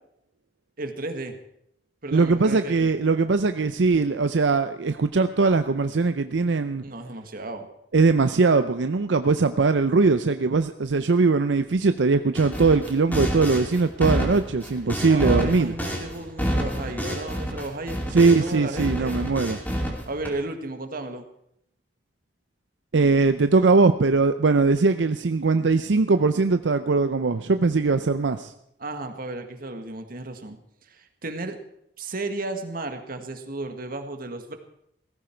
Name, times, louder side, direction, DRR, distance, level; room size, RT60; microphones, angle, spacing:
voice 1, 0.8-1.4 2.0-2.9 6.8-7.7 14.8-19.2 20.0-21.2 28.8-31.6 32.0-34.6, right 2 dB, 55° right, 6 dB, 1.7 m, -34 dB
voice 2, 2.1-6.8 7.9-15.7 18.1-19.6 22.9-28.5, right 4 dB, 80° right, 10 dB, 0.6 m, -21 dB
sound 1, 12.4-18.5 18.8-20.3, equal, 10° left, 2.7 m, -28 dB
17.0 x 14.5 x 4.5 m, 0.76 s
head